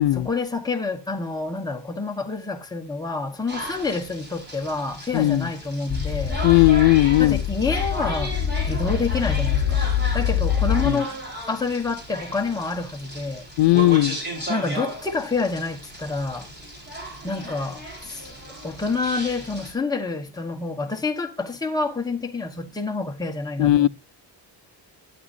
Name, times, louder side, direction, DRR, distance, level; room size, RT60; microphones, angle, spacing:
voice 1, 0.0-6.4 7.2-8.4 8.7-9.9 10.1-11.2 11.5-13.5 14.5-16.5 17.2-18.3 18.6-23.9, left 3 dB, 10° left, 1.2 m, -28 dB
sound 1, 3.5-19.7, right 1 dB, 25° right, 4.0 m, -35 dB
voice 2, 5.1-5.5 6.4-7.4 10.8-11.0 13.6-14.2 23.6-23.9, left 16 dB, 80° left, 0.5 m, -17 dB
sound 2, 5.9-10.9, left 8 dB, 40° left, 1.0 m, -24 dB
12.0 x 9.6 x 2.6 m
cardioid pair, 175°, 43 cm